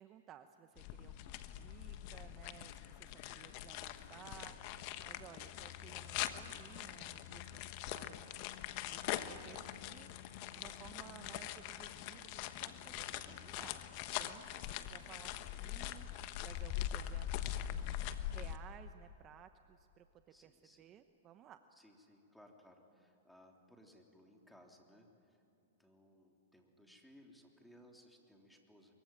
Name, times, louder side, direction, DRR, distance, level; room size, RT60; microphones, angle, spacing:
voice 1, 0.0-8.3 8.6-10.1 10.5-13.8 14.2-21.6, right 10 dB, 30° right, 9 dB, 0.9 m, -58 dB
sound 1, 0.8-18.6, left 12 dB, 50° left, 1.3 m, -43 dB
voice 2, 20.3-21.0 21.7-25.4 25.8-28.9, equal, ahead, 1 dB, 3.4 m, -63 dB
23.5 x 23.5 x 9.0 m, 2.7 s
hypercardioid pair, 125°, 0 cm